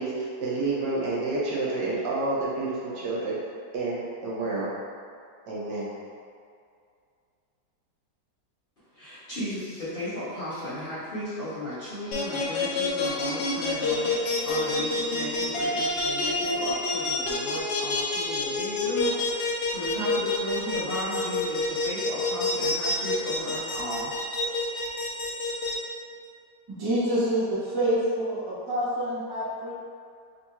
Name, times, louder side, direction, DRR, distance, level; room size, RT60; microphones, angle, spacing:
voice 1, 0.0-3.4 3.7-4.7 5.5-5.9, right 3 dB, 75° right, -7 dB, 1.5 m, -29 dB
voice 2, 8.9-24.2, left 1 dB, 40° left, -11 dB, 0.9 m, -35 dB
sound 1, 12.1-25.7, left 3 dB, 75° left, 0.6 m, -27 dB
voice 3, 26.7-29.7, right 1 dB, 35° right, -9 dB, 0.4 m, -27 dB
3.4 x 2.4 x 4.2 m, 2.3 s
omnidirectional pair, 1.8 m